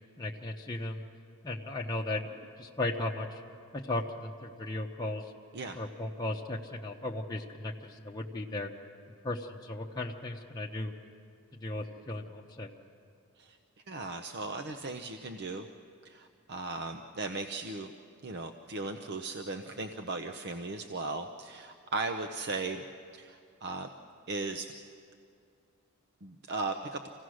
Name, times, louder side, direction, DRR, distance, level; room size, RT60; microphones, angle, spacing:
voice 1, 0.2-1.0 1.4-3.4 3.7-5.3 5.7-8.7 9.2-10.9 11.6-12.7, left 2 dB, 20° left, -2 dB, 0.8 m, -36 dB
voice 2, 13.9-15.7 16.0-17.9 18.2-22.8 23.1-23.9 24.3-24.7 26.2-27.0, right 3 dB, 50° right, 6 dB, 0.7 m, -37 dB
26.5 x 16.5 x 6.3 m, 2.4 s
head